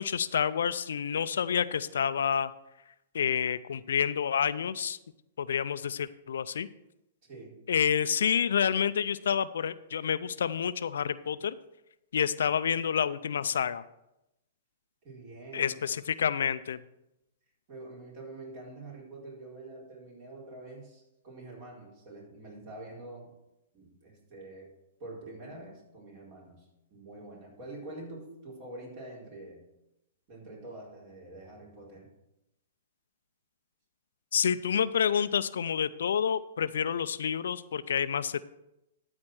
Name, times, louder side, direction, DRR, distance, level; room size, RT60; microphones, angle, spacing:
voice 1, 0.0-2.5 3.1-5.0 5.4-6.7 7.7-11.6 12.1-13.8 15.5-16.8 34.3-38.4, left 7 dB, 75° left, 14 dB, 0.4 m, -28 dB
voice 2, 7.2-7.7 15.0-15.8 17.7-23.3 23.7-24.7 25.0-29.7 30.3-32.1, right 2 dB, 45° right, -3 dB, 4.3 m, -46 dB
12.5 x 4.3 x 6.2 m, 0.89 s
hypercardioid pair, 125°, 0 cm